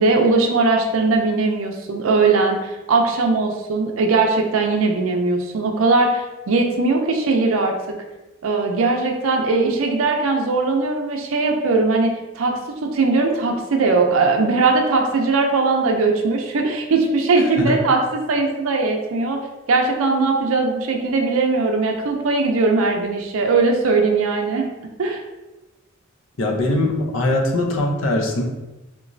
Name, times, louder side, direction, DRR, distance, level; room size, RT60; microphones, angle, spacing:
voice 1, 0.0-7.7 8.4-24.7 25.0-25.2, right 3 dB, 75° right, 2 dB, 0.5 m, -19 dB
voice 2, 26.4-28.4, left 1 dB, 70° left, 1 dB, 0.7 m, -21 dB
3.7 x 3.0 x 2.6 m, 1.0 s
head